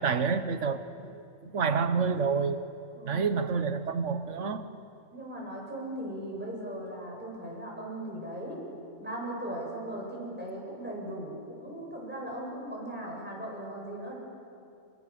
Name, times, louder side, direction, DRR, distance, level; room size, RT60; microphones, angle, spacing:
voice 1, 0.0-2.6 3.0-4.7, right 5 dB, 80° right, 11 dB, 1.5 m, -29 dB
voice 2, 2.9-3.3 5.1-8.6 9.0-14.2, right 1 dB, 10° right, -3 dB, 7.2 m, -38 dB
29.0 x 23.5 x 7.0 m, 2.5 s
omnidirectional pair, 1.2 m